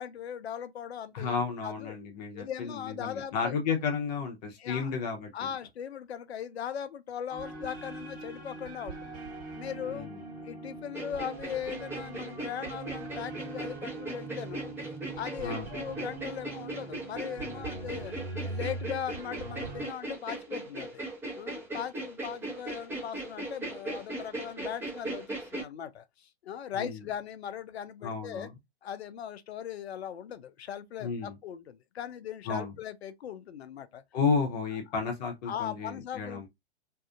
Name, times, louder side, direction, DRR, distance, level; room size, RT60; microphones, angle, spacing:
voice 1, 0.0-1.4 1.6-2.0 2.3-3.5 4.6-4.9 5.3-9.2 9.5-10.1 10.4-14.7 15.2-18.1 18.4-21.0 21.4-28.5 28.8-34.0 35.5-36.5, left 9 dB, 75° left, 0.5 m, -39 dB
voice 2, 1.1-5.5 9.9-10.2 15.4-15.7 26.7-27.0 28.0-28.5 31.0-31.4 32.5-32.7 34.1-36.5, left 5 dB, 40° left, 0.8 m, -32 dB
sound 1, 7.3-19.9, right 3 dB, 40° right, 1.2 m, -42 dB
sound 2, 10.9-25.6, right 2 dB, 5° right, 0.8 m, -38 dB
2.7 x 2.4 x 2.4 m
hypercardioid pair, 120°, 33 cm